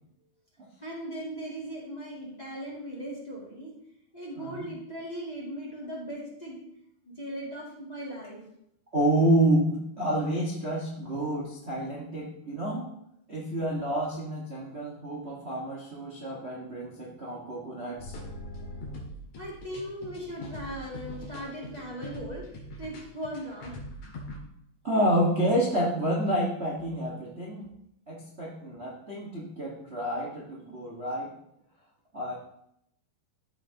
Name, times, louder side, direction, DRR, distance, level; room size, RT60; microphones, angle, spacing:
voice 1, 0.8-3.7 4.1-6.6 7.2-8.4 19.4-22.4 22.8-23.7, equal, 15° left, -6 dB, 1.9 m, -38 dB
voice 2, 8.9-12.9 13.3-18.1 24.8-27.7 28.1-31.3 32.1-32.3, right 1 dB, 70° right, -4 dB, 0.6 m, -29 dB
sound 1, 18.0-24.4, left 1 dB, 55° left, 2.8 m, -41 dB
15.0 x 6.1 x 3.0 m, 0.76 s
omnidirectional pair, 4.3 m